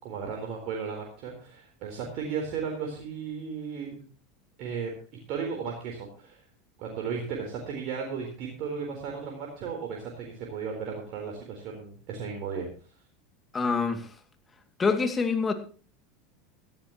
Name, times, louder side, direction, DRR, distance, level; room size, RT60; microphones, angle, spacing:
voice 1, 0.0-4.0 4.6-5.0 5.3-6.4 6.8-12.7, right 6 dB, 55° right, 4.0 m, -35 dB
voice 2, 13.5-14.1 14.8-15.5, left 4 dB, 20° left, 2.5 m, -26 dB
17.5 x 14.0 x 3.1 m
hypercardioid pair, 85°, 0 cm